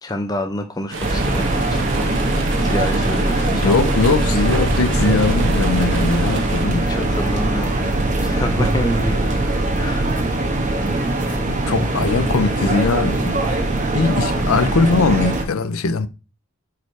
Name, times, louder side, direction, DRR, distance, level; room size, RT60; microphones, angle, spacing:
voice 1, 0.0-2.1 2.6-3.9 6.7-7.9 8.2-9.3 9.8-10.1, left 1 dB, 20° left, 0.5 m, -28 dB
sound 1, 0.9-6.7, right 3 dB, 60° right, 1.0 m, -29 dB
sound 2, 1.0-15.4, right 2 dB, 35° right, 1.2 m, -21 dB
voice 2, 3.5-6.9 11.7-13.4 13.9-16.1, left 4 dB, 80° left, 0.6 m, -20 dB
4.8 x 4.7 x 4.6 m
head